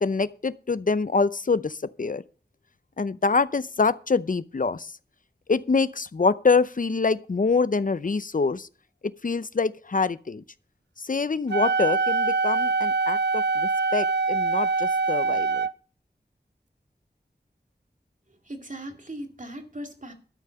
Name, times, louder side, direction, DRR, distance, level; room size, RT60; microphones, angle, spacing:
voice 1, 0.0-1.7 2.0-2.2 3.0-4.9 5.5-8.7 9.2-10.4 11.1-15.6, left 4 dB, 50° left, 0.6 m, -25 dB
Wind instrument woodwind instrument, 11.5-15.7, right 4 dB, 85° right, 0.4 m, -24 dB
voice 2, 18.5-20.1, right 1 dB, 45° right, 2.3 m, -38 dB
12.5 x 5.6 x 7.7 m
wide cardioid pair, 45°, 18 cm